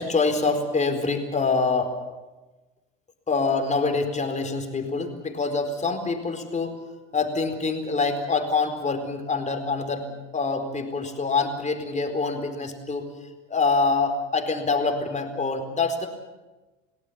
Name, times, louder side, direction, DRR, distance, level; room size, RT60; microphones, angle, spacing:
voice 1, 0.0-1.9 3.3-6.8 7.1-10.1 10.3-13.1 13.5-16.1, left 4 dB, 20° left, 5 dB, 4.3 m, -25 dB
29.0 x 18.0 x 7.2 m, 1.1 s
hypercardioid pair, 100°, 37 cm